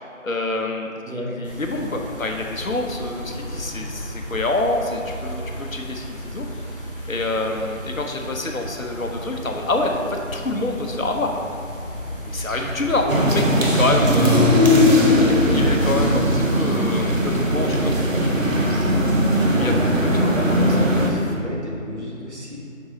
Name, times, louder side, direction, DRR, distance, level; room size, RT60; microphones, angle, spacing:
voice 1, 0.2-6.4 7.1-11.3 12.3-14.5 15.2-18.4 19.6-19.9 20.2-21.1, left 2 dB, 85° left, 3 dB, 1.0 m, -27 dB
sound 1, 1.4-21.3, equal, 40° left, 0.8 m, -33 dB
sound 2, 13.1-21.1, equal, 70° right, 1.1 m, -18 dB
voice 2, 20.3-22.6, left 1 dB, 55° right, -4 dB, 1.5 m, -32 dB
6.9 x 4.7 x 3.9 m, 2.8 s
figure-of-eight pair, 180°, 40 cm